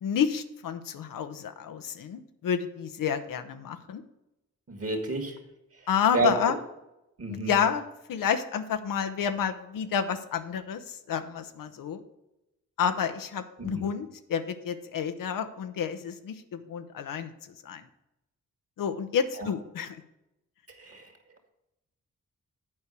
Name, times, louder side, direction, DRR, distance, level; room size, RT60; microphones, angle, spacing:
voice 1, 0.0-4.0 5.9-6.6 7.3-12.0 12.8-17.8 18.8-20.0, left 7 dB, 90° left, 9 dB, 0.7 m, -30 dB
voice 2, 4.7-5.4 6.1-6.3 7.2-7.6 13.6-13.8 20.8-21.1, right 3 dB, 45° right, 5 dB, 2.0 m, -29 dB
8.6 x 4.7 x 6.6 m, 0.91 s
cardioid pair, 55°, 32 cm